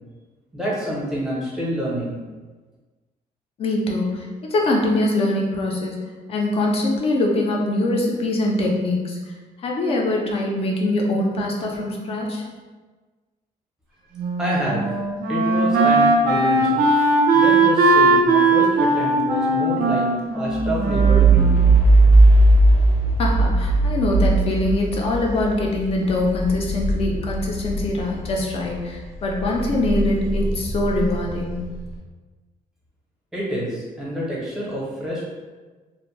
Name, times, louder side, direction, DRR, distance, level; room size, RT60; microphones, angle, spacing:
voice 1, 0.5-2.2 14.4-14.8 15.3-16.8 17.3-20.1 20.3-21.5 33.3-35.2, equal, 5° right, -7 dB, 0.7 m, -27 dB
voice 2, 3.6-6.0 6.3-12.4 23.2-31.6, left 2 dB, 40° left, 0 dB, 0.5 m, -23 dB
Wind instrument woodwind instrument, 14.2-22.0, right 2 dB, 85° right, 0.5 m, -19 dB
sound 1, 20.5-28.8 29.2-31.8, right 2 dB, 80° left, 0.6 m, -18 dB
2.5 x 2.1 x 3.0 m, 1.3 s
cardioid pair, 170°, 15 cm